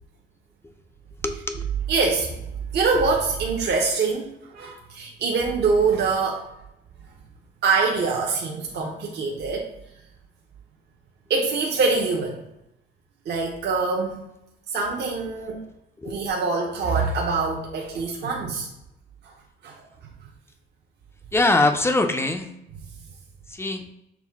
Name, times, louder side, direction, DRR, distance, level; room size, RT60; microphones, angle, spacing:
voice 1, 1.2-1.6 16.0-16.2 21.3-22.5 23.5-23.9, left 2 dB, 10° left, 7 dB, 0.4 m, -22 dB
voice 2, 1.9-2.4 2.7-6.4 7.6-9.7 11.3-12.4 13.3-14.2 14.7-15.6 16.0-18.7 19.2-19.3 19.6-19.8, right 4 dB, 60° right, 0 dB, 0.7 m, -24 dB
5.9 x 2.1 x 3.5 m, 0.85 s
cardioid pair, 90°, 20 cm